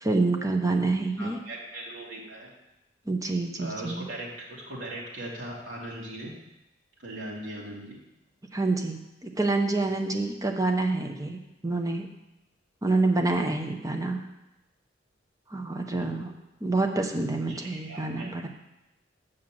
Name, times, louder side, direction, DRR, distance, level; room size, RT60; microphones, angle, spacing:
voice 1, 0.0-1.4 3.1-4.1 8.5-12.1 12.8-14.2 15.5-16.3 16.6-18.5, right 3 dB, 20° right, 3 dB, 0.9 m, -27 dB
voice 2, 1.2-2.5 3.6-6.3 7.0-8.0 15.9-16.2 17.5-18.3, right 1 dB, 75° right, -4 dB, 2.9 m, -39 dB
6.8 x 6.2 x 7.7 m, 0.94 s
head